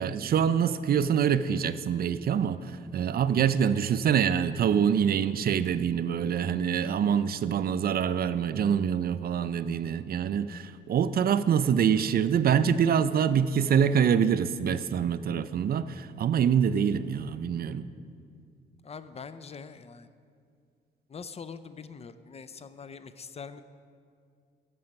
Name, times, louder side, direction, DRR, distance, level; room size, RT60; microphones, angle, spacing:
voice 1, 0.0-17.9, right 8 dB, 50° right, 13 dB, 0.4 m, -25 dB
voice 2, 18.8-20.1 21.1-23.6, left 5 dB, 30° left, 13 dB, 0.4 m, -43 dB
11.5 x 7.6 x 5.3 m, 2.2 s
cardioid pair, 90°, 20 cm